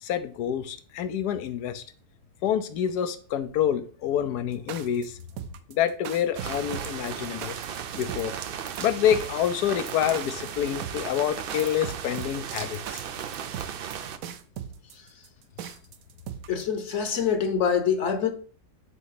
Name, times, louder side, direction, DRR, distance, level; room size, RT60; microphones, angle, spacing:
voice 1, 0.0-1.8 2.4-5.2 5.7-7.6 8.0-8.4 8.8-13.0, left 10 dB, 90° left, 1.2 m, -27 dB
sound 1, 4.5-16.8, right 9 dB, 70° right, 1.0 m, -38 dB
sound 2, 6.3-14.2, right 8 dB, 90° right, 0.5 m, -36 dB
voice 2, 16.5-18.3, left 7 dB, 55° left, 1.0 m, -25 dB
8.3 x 2.9 x 5.8 m
omnidirectional pair, 1.7 m